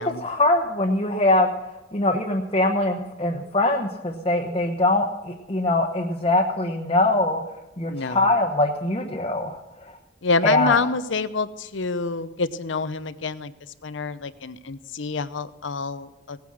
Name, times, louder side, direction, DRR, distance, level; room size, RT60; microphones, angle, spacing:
voice 1, 0.0-1.5 1.9-7.4 7.8-10.0 10.4-10.8, left 2 dB, 30° left, 1 dB, 1.0 m, -22 dB
voice 2, 7.9-8.3 10.2-13.5 13.8-16.4, left 4 dB, 80° left, 14 dB, 0.8 m, -27 dB
17.5 x 9.5 x 6.4 m, 1.0 s
head